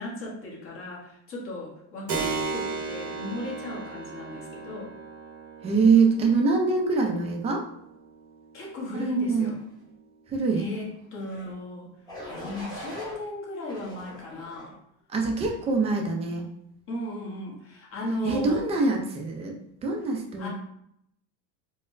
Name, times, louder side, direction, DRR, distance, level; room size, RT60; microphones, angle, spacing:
voice 1, 0.0-4.9 8.5-9.6 10.5-11.9 12.3-14.8 16.9-18.6 20.4-20.5, left 1 dB, 35° left, -3 dB, 1.0 m, -36 dB
Keyboard (musical), 2.1-10.3, right 4 dB, 40° right, 0.7 m, -37 dB
voice 2, 5.6-7.6 8.9-9.5 10.3-10.7 15.1-16.4 18.2-19.5 19.8-20.5, right 4 dB, 20° right, 1 dB, 0.4 m, -24 dB
sound 1, 11.2-11.5 12.1-13.1 13.7-14.7 15.3-15.7, left 1 dB, 10° left, 0.8 m, -41 dB
4.2 x 2.0 x 2.5 m, 0.74 s
cardioid pair, 145°, 36 cm